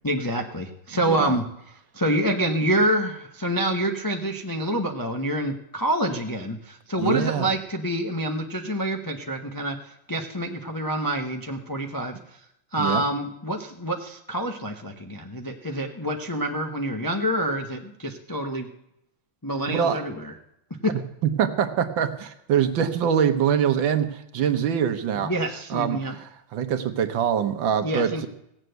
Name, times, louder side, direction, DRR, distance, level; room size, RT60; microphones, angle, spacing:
voice 1, 0.0-1.4 1.9-12.2 12.7-18.7 19.4-20.3 20.8-20.9 25.1-26.2 27.8-28.3, right 1 dB, 30° left, 2 dB, 0.4 m, -27 dB
voice 2, 0.9-1.4 7.0-7.5 12.8-13.0 19.7-20.0 21.2-25.3 25.7-28.3, right 8 dB, 70° right, 8 dB, 1.7 m, -24 dB
17.0 x 7.4 x 7.9 m, 0.80 s
omnidirectional pair, 2.2 m